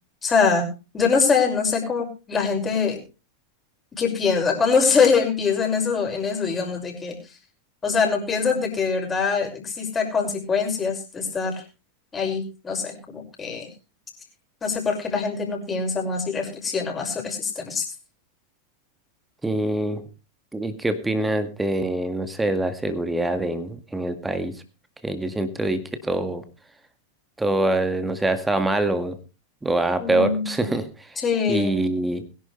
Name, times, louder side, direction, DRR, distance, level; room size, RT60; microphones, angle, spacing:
voice 1, 0.2-0.7 0.9-3.0 4.0-7.1 7.8-11.6 12.1-13.7 14.6-17.8 30.0-30.6 31.2-31.7, left 5 dB, 20° left, 1 dB, 6.1 m, -23 dB
voice 2, 19.4-20.0 20.5-24.5 25.0-26.4 27.4-29.2 29.6-31.1 31.5-32.2, right 2 dB, 10° right, 10 dB, 2.0 m, -24 dB
22.0 x 11.0 x 3.3 m, 0.31 s
figure-of-eight pair, 90°, 0 cm